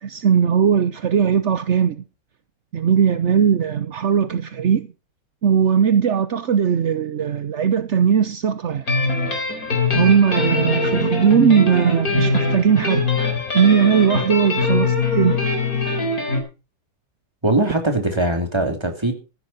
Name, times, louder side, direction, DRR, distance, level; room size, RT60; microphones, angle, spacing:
voice 1, 0.0-2.0 2.7-4.9 5.4-8.9 9.9-13.1 13.5-15.5, right 7 dB, 55° right, 0.8 m, -18 dB
sound 1, 8.9-16.4, left 3 dB, 45° left, 4.5 m, -22 dB
voice 2, 17.4-19.1, right 2 dB, 15° right, 3.0 m, -21 dB
15.0 x 11.5 x 4.2 m
omnidirectional pair, 2.1 m